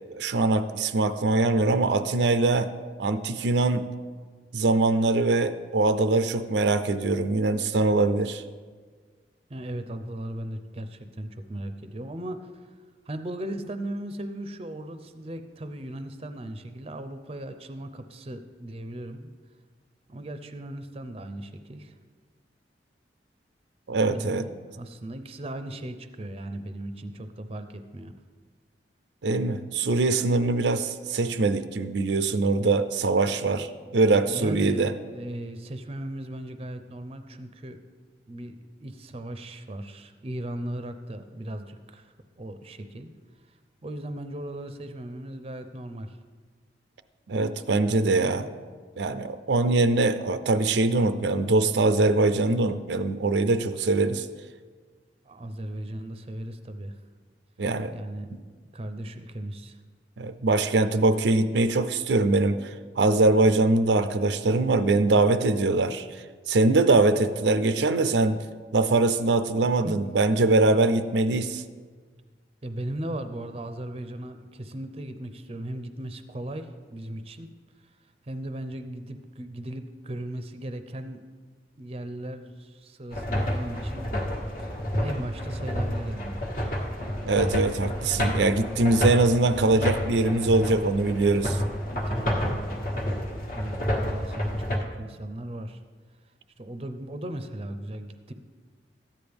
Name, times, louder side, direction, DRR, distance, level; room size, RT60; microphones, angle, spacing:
voice 1, 0.1-2.7 3.0-3.8 4.5-8.4 23.9-24.5 29.2-34.9 47.3-48.5 49.0-54.3 57.6-57.9 60.2-66.1 66.5-68.4 68.7-71.6 87.2-91.6, right 2 dB, 75° right, 10 dB, 0.5 m, -23 dB
voice 2, 9.5-12.7 13.1-19.3 20.1-21.9 24.0-28.1 33.2-37.8 38.3-43.1 43.5-43.6 43.8-46.2 55.3-57.0 57.9-58.4 58.7-59.8 69.8-70.0 72.6-77.5 77.8-78.0 78.2-81.2 81.8-84.1 85.0-86.4 91.9-92.7 93.1-93.2 93.5-95.8 96.6-98.3, right 1 dB, 35° right, 9 dB, 0.6 m, -37 dB
sound 1, 83.1-94.8, equal, 50° left, 1.3 m, -29 dB
13.5 x 9.6 x 3.5 m, 1.5 s
head